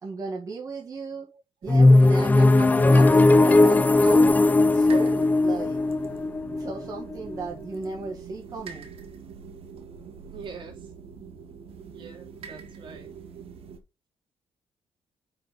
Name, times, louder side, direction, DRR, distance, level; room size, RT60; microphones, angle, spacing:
voice 1, 0.0-1.3 1.6-4.4 4.7-5.8 6.6-8.9, right 4 dB, 35° right, 1.8 m, -35 dB
sound 1, 1.6-13.8, right 6 dB, 75° right, 1.6 m, -44 dB
sound 2, 1.7-7.5, left 2 dB, 15° left, 0.4 m, -18 dB
voice 2, 10.3-10.8 11.9-13.1, right 5 dB, 55° right, 2.8 m, -43 dB
5.6 x 5.3 x 5.3 m
wide cardioid pair, 155°, 10 cm